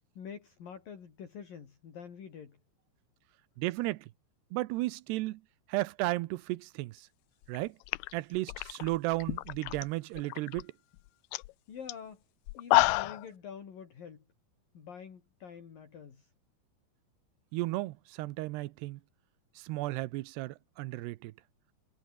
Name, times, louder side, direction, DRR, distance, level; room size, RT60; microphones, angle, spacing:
voice 1, 0.2-2.6 11.7-12.2 12.5-14.2 14.7-16.3, left 7 dB, 55° left, 5.0 m, -46 dB
voice 2, 3.6-4.1 4.5-5.4 5.7-7.1 7.5-7.8 8.1-10.7 17.5-19.0 19.6-21.3, right 19 dB, 90° right, 2.9 m, -34 dB
sound 1, 7.4-7.6 7.9-9.8 10.2-10.6 11.0-11.1 11.3-11.5 11.9-12.0 12.5-13.3, left 21 dB, 80° left, 2.4 m, -29 dB
omnidirectional pair, 4.8 m